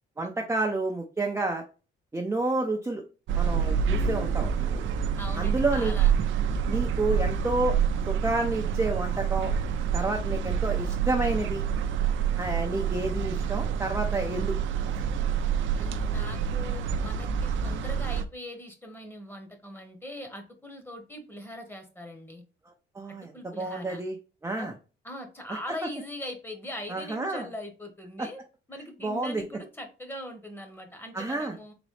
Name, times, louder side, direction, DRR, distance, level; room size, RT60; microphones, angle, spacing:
voice 1, 0.2-1.6 2.1-3.0 3.3-4.8 5.4-5.9 6.7-7.8 8.1-9.5 9.9-11.6 12.4-14.6 22.9-24.2 24.4-24.7 25.5-25.6 26.9-27.5 28.2-28.3 29.0-29.4 31.1-31.5, right 2 dB, 15° right, 1 dB, 0.6 m, -29 dB
sound 1, 3.3-18.2, right 7 dB, 75° right, 0.5 m, -27 dB
voice 2, 5.2-6.1 15.8-22.4 23.3-24.0 24.6-24.7 25.0-28.4 28.7-31.7, left 1 dB, 10° left, 4 dB, 1.2 m, -41 dB
4.0 x 3.0 x 3.2 m, 0.33 s
cardioid pair, 90°, 20 cm